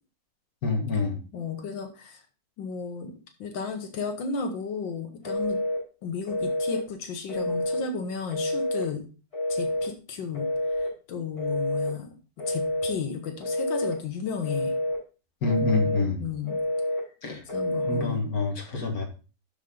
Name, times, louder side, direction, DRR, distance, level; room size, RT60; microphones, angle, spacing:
voice 1, 0.6-1.2 15.4-16.2 17.2-17.4 17.9-19.0, left 3 dB, 55° left, 2 dB, 2.1 m, -26 dB
voice 2, 1.3-2.2 2.6-3.1 3.4-5.6 6.0-9.0 9.5-10.5 10.8-12.1 12.5-14.8 15.6-15.8 16.2-16.6 17.5-18.2, left 5 dB, 90° left, 5 dB, 1.9 m, -33 dB
Telephone, 5.2-5.8 6.3-6.8 7.3-7.9 8.3-8.9 9.3-9.9 10.3-10.9 11.4-11.9 12.4-13.0 13.4-14.0 14.4-15.0 15.4-16.0 16.5-17.0 17.5-18.1, left 1 dB, 35° left, 5.0 m, -28 dB
7.3 x 6.6 x 3.8 m, 0.34 s
omnidirectional pair, 2.0 m